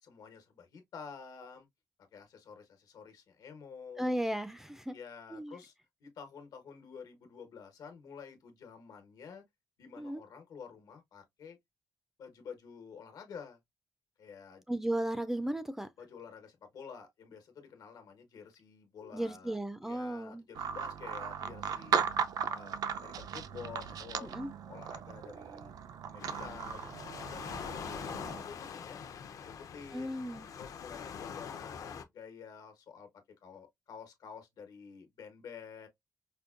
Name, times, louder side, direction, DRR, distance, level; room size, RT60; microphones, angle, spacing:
voice 1, 0.0-1.7 2.1-4.2 4.9-5.7 6.0-9.4 9.8-11.6 12.2-13.6 14.2-14.6 16.0-22.0 22.5-24.3 24.7-25.7 26.0-29.0 29.4-30.2 30.5-35.9, left 6 dB, 85° left, 1.1 m, -50 dB
voice 2, 4.0-4.9 5.3-5.6 10.0-10.2 14.7-15.9 19.1-20.5 24.2-24.5 29.9-30.5, right 1 dB, 5° right, 0.3 m, -35 dB
sound 1, 20.5-28.4, right 7 dB, 80° right, 0.5 m, -37 dB
Waves surf, 26.2-32.0, left 7 dB, 65° left, 0.6 m, -43 dB
5.1 x 2.2 x 2.4 m
wide cardioid pair, 160°, 6 cm